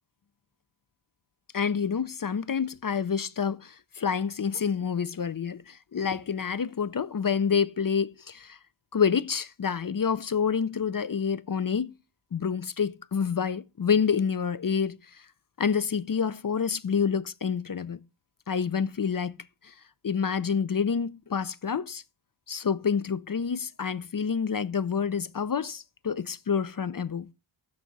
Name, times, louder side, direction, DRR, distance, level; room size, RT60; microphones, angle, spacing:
voice 1, 1.5-8.6 8.9-11.9 12.3-15.0 15.6-18.0 18.5-19.4 19.6-19.7 20.0-22.0 22.5-27.3, left 6 dB, 45° left, 0.5 m, -28 dB
13.5 x 4.7 x 4.0 m
wide cardioid pair, 45°, 50 cm